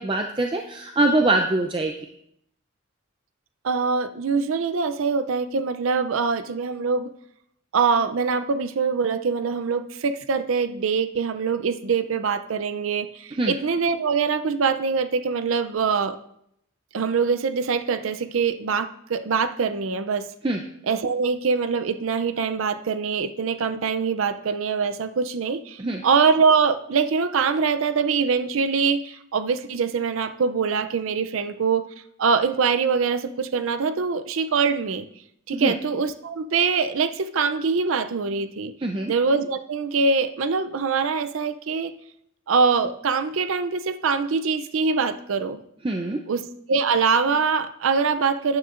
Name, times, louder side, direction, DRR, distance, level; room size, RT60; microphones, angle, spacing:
voice 1, 0.0-1.9 13.4-13.5 20.4-20.6 25.8-26.0 35.5-35.7 38.8-39.1 45.8-46.2, right 2 dB, 25° right, 3 dB, 0.5 m, -23 dB
voice 2, 3.6-7.1 7.7-16.2 16.9-20.3 20.8-31.9 32.2-35.1 35.5-38.7 39.1-41.9 42.5-45.6 46.3-48.6, right 5 dB, 80° right, 11 dB, 0.5 m, -23 dB
12.5 x 9.5 x 2.5 m, 0.75 s
head